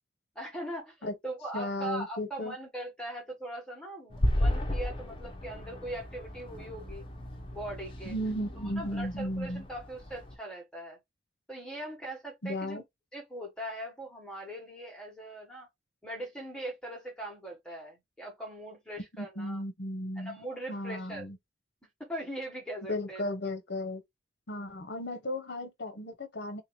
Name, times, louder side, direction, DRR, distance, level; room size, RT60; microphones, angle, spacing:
voice 1, 0.3-7.0 7.5-8.1 8.7-11.0 11.5-12.8 13.1-15.7 16.0-19.6 20.2-21.2 22.0-23.2, right 1 dB, 5° left, 1.4 m, -40 dB
voice 2, 1.5-2.5 8.1-9.6 12.4-12.8 19.2-20.4 20.7-21.4 22.9-24.0 24.5-26.6, left 1 dB, 60° left, 0.8 m, -35 dB
sound 1, 4.1-10.4, left 1 dB, 25° left, 0.8 m, -34 dB
3.7 x 2.7 x 3.1 m
head